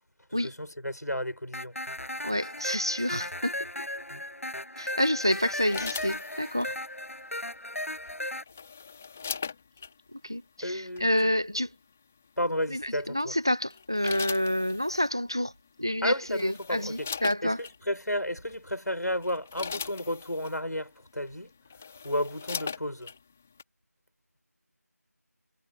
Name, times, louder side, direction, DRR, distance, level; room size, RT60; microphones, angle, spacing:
voice 1, 0.3-1.7 4.1-4.2 10.6-11.1 12.4-13.3 16.0-17.1 17.4-21.5 22.0-23.1, left 1 dB, 80° left, 4.2 m, -32 dB
sound 1, 1.5-8.4, left 1 dB, 55° left, 6.8 m, -36 dB
voice 2, 2.2-3.5 4.8-6.8 10.1-11.7 12.7-15.5 15.8-17.6, left 1 dB, 15° right, 0.6 m, -28 dB
sound 2, 5.4-6.7 8.1-9.9 11.0-11.2 12.9-13.2 13.7-15.1 15.9-16.0 16.3-17.8 18.5-18.7 19.1-20.6 21.3-21.4 21.6-23.2 23.6-23.7, left 5 dB, 5° left, 1.8 m, -39 dB
figure-of-eight pair, 175°, 9 cm